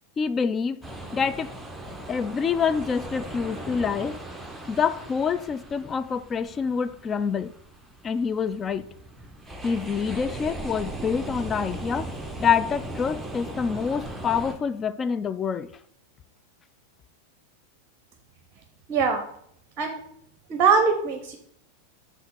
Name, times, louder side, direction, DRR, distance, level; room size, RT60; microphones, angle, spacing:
voice 1, 0.2-0.8 1.1-1.5 2.1-4.2 4.7-7.5 8.0-8.9 9.6-12.1 12.4-15.7, left 6 dB, 20° left, 0.3 m, -26 dB
sound 1, 0.8-14.6, right 1 dB, 5° right, 0.8 m, -38 dB
voice 2, 18.9-19.2 19.8-20.0 20.5-21.4, right 5 dB, 35° right, 0.7 m, -22 dB
5.6 x 3.6 x 5.8 m
figure-of-eight pair, 90°, 0 cm